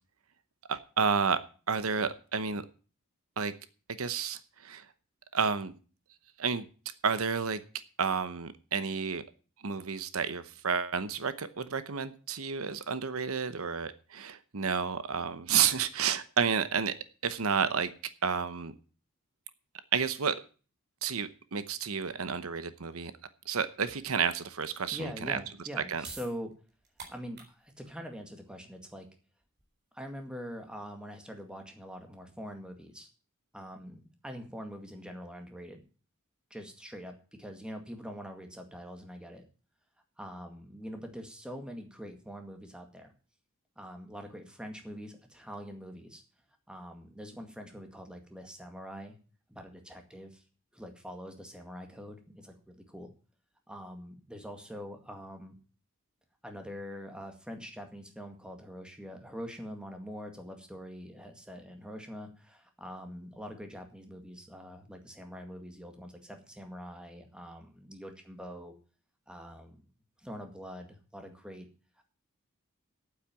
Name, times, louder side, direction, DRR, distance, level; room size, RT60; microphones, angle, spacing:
voice 1, 0.7-1.4 1.7-2.6 3.4-3.5 4.0-4.8 5.3-5.7 6.4-6.7 7.0-7.6 8.0-9.2 9.6-16.9 17.2-17.9 18.2-18.7 19.9-20.4 21.0-23.1 23.5-25.4 25.9-26.0, right 6 dB, 75° right, 13 dB, 0.9 m, -30 dB
voice 2, 24.9-26.5 27.1-29.1 29.9-33.1 33.5-35.8 36.5-39.4 40.2-43.1 43.8-46.2 46.7-49.2 49.5-50.4 50.7-53.1 53.7-55.6 56.4-68.7 69.3-69.9 70.2-71.7, equal, 5° right, 4 dB, 1.9 m, -44 dB
sound 1, 26.0-32.3, right 4 dB, 50° right, 4.1 m, -52 dB
9.1 x 8.4 x 8.9 m, 0.38 s
head